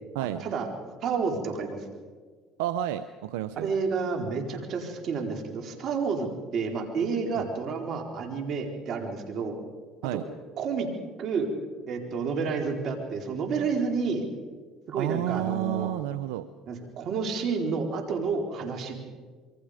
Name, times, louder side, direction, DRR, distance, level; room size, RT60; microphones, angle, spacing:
voice 1, 0.2-0.7 1.0-1.8 3.6-6.3 6.5-9.6 10.6-10.9 11.2-11.5 11.9-14.2 14.9-15.9 16.7-19.0, right 5 dB, 55° right, 3 dB, 4.2 m, -30 dB
voice 2, 2.6-3.7 7.3-7.4 10.0-10.2 15.0-16.5, right 13 dB, 85° right, 12 dB, 0.8 m, -30 dB
26.5 x 23.5 x 5.1 m, 1.5 s
supercardioid pair, 85°, 0 cm